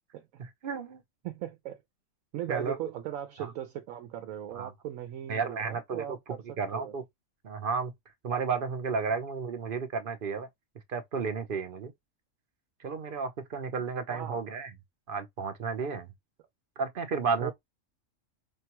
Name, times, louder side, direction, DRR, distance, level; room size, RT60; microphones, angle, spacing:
voice 1, 0.4-1.0 2.5-2.9 3.4-3.5 4.5-4.7 5.3-6.2 6.6-7.0 7.4-7.9 8.2-10.5 10.9-11.9 12.8-14.7 15.1-16.1 16.8-17.5, right 5 dB, 50° right, 0.7 m, -32 dB
voice 2, 1.2-1.8 2.3-6.4 6.7-6.9 14.1-14.4 17.4-17.5, right 11 dB, 80° right, 1.0 m, -38 dB
5.2 x 2.2 x 2.9 m
omnidirectional pair, 1.4 m